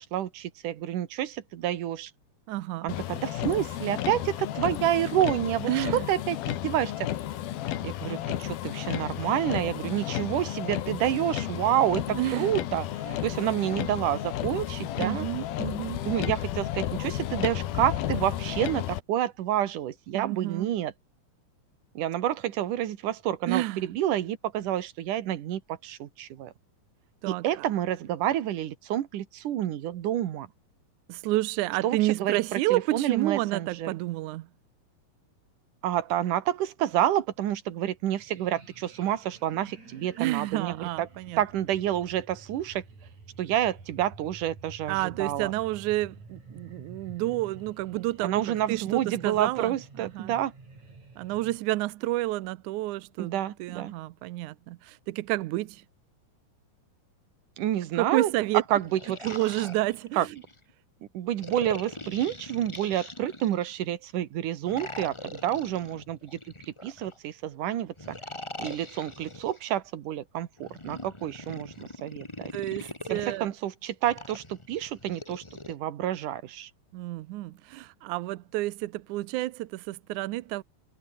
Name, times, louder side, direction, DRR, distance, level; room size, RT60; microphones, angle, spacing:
voice 1, 0.0-2.1 2.8-7.1 7.8-12.9 13.2-15.3 16.0-20.9 21.9-26.5 27.3-30.5 31.8-33.9 35.8-41.1 41.4-42.8 43.4-45.5 48.2-50.5 53.2-53.9 57.6-58.3 58.7-59.2 60.2-60.3 61.1-66.4 66.7-68.2 68.6-72.5 72.8-76.7, right 12 dB, 65° right, 2.8 m, -29 dB
voice 2, 2.5-2.9 5.7-6.0 12.1-12.5 13.1-13.2 15.0-16.0 20.1-20.7 23.5-23.9 27.2-27.7 31.1-34.5 40.2-41.4 44.9-50.4 51.2-55.8 58.0-58.6 59.2-60.4 72.5-73.5 76.9-80.6, right 17 dB, 80° right, 1.8 m, -30 dB
Motor vehicle (road), 2.9-19.0, left 12 dB, 90° left, 3.4 m, -32 dB
sound 1, 38.1-51.6, right 3 dB, 50° right, 7.9 m, -49 dB
sound 2, 58.6-60.6 61.4-63.8 64.6-67.2 68.0-69.6 70.6-73.4 74.0-75.7, left 2 dB, 15° left, 1.0 m, -42 dB
omnidirectional pair, 4.2 m